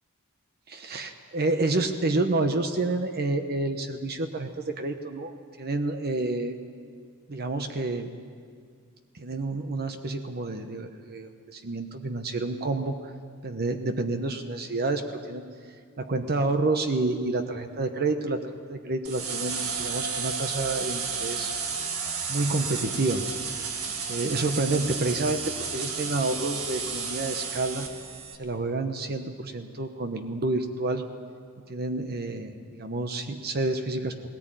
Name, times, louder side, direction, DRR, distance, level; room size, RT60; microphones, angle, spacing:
voice 1, 0.7-6.6 7.3-8.1 9.2-12.9 13.4-15.4 16.0-18.4 18.7-21.5 22.3-23.2 24.1-25.4 25.7-27.9 28.4-31.0 31.7-34.3, right 2 dB, 45° right, 6 dB, 1.0 m, -29 dB
sound 1, 19.0-28.3, right 5 dB, 70° right, 2.1 m, -32 dB
19.5 x 18.0 x 9.1 m, 2.1 s
head